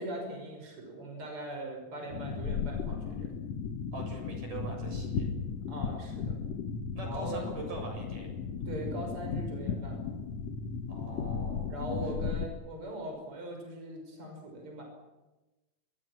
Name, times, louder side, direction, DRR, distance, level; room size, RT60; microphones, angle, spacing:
voice 1, 0.0-3.3 5.7-6.4 7.0-7.5 8.6-10.1 11.7-14.8, right 1 dB, 40° right, 2 dB, 6.7 m, -40 dB
sound 1, 2.1-12.5, left 5 dB, 60° left, 2.0 m, -35 dB
voice 2, 3.9-5.3 7.0-8.3 10.9-11.9, right 2 dB, 70° right, 2 dB, 9.1 m, -42 dB
27.5 x 24.0 x 6.2 m, 1.1 s
omnidirectional pair, 3.9 m